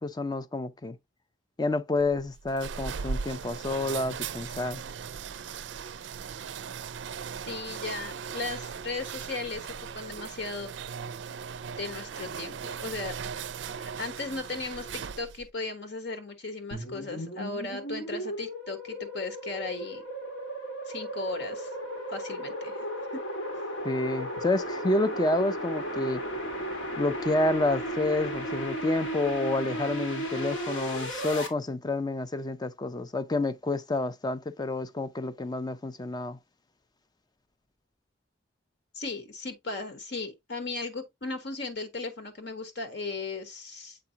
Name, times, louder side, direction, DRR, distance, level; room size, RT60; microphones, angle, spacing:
voice 1, 0.0-1.0 1.6-4.8 23.8-26.2 27.0-36.4, left 2 dB, 20° left, 0.4 m, -29 dB
sound 1, 2.0-15.5, right 6 dB, 65° right, 0.4 m, -38 dB
voice 2, 7.5-10.7 11.8-13.2 13.7-20.0 20.9-21.7 22.1-22.8 23.1-23.2 38.9-44.0, left 3 dB, 60° left, 1.3 m, -36 dB
sound 2, 16.7-31.5, equal, 80° left, 1.8 m, -35 dB
7.7 x 4.7 x 2.8 m
head